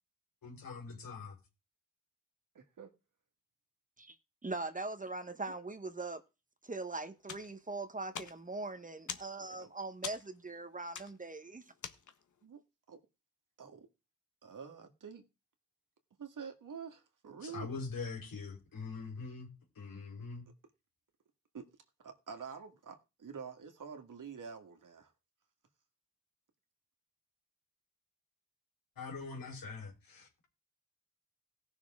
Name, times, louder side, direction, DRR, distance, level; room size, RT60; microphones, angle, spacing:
voice 1, 0.4-1.4 17.4-19.5 19.8-20.5 29.0-30.3, left 4 dB, 80° left, 3.8 m, -43 dB
voice 2, 2.6-2.9 5.5-5.6 9.4-9.7 12.4-12.6 12.9-13.0 13.6-13.9 14.4-15.2 16.2-17.7 21.5-21.7 22.0-25.1, right 6 dB, 65° right, 1.9 m, -47 dB
voice 3, 4.4-6.2 6.6-11.6, right 3 dB, 25° right, 1.1 m, -41 dB
sound 1, 7.2-12.4, left 6 dB, 60° left, 1.2 m, -47 dB
17.5 x 6.3 x 3.7 m
cardioid pair, 90°, 34 cm